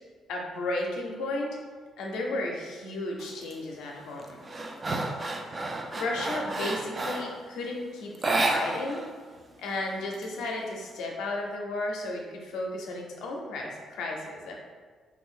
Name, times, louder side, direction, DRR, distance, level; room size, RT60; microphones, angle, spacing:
voice 1, 0.3-1.6 2.0-4.4 5.9-9.0 9.6-14.5, left 2 dB, 85° left, 0 dB, 0.5 m, -34 dB
sound 1, 3.2-3.5 4.0-7.4 8.1-9.1 9.4-9.5 9.8-10.8, right 2 dB, 30° right, 0.3 m, -31 dB
2.5 x 2.2 x 3.6 m, 1.5 s
cardioid pair, 90°, 0 cm